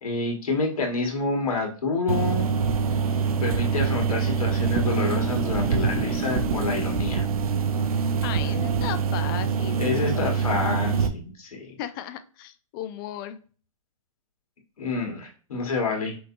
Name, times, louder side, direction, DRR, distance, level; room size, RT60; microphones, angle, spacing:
voice 1, 0.0-2.5 3.4-7.2 9.8-11.7 14.8-16.1, left 3 dB, 85° left, 2 dB, 1.8 m, -28 dB
sound 1, 2.1-11.1, right 6 dB, 85° right, 0.7 m, -25 dB
voice 2, 8.2-10.3 11.8-13.4, left 11 dB, 35° left, 10 dB, 0.5 m, -35 dB
5.6 x 2.7 x 2.6 m, 0.38 s
hypercardioid pair, 145°, 18 cm